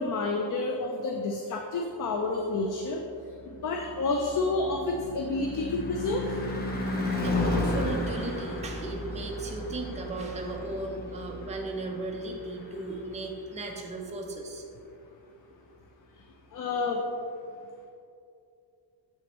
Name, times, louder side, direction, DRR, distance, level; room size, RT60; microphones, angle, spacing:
voice 1, 0.0-3.0 3.6-6.3 16.5-17.0, left 3 dB, 45° left, 2 dB, 0.5 m, -29 dB
Car passing by / Truck / Engine, 3.2-13.5, left 2 dB, 20° left, 0.8 m, -34 dB
voice 2, 7.0-14.6, right 2 dB, 15° right, 0 dB, 0.5 m, -36 dB
7.1 x 6.1 x 3.0 m, 2.6 s
wide cardioid pair, 180°, 45 cm